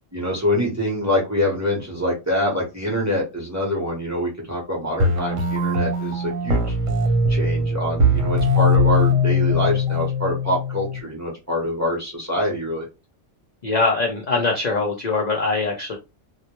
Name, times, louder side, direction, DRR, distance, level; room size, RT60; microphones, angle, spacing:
voice 1, 0.1-6.7 7.3-12.9, equal, 15° right, -2 dB, 0.7 m, -25 dB
sound 1, 5.0-11.0, left 2 dB, 80° right, 1.0 m, -20 dB
voice 2, 13.6-16.0, left 3 dB, 60° left, 1 dB, 0.4 m, -22 dB
2.1 x 2.1 x 2.8 m, 0.26 s
omnidirectional pair, 1.3 m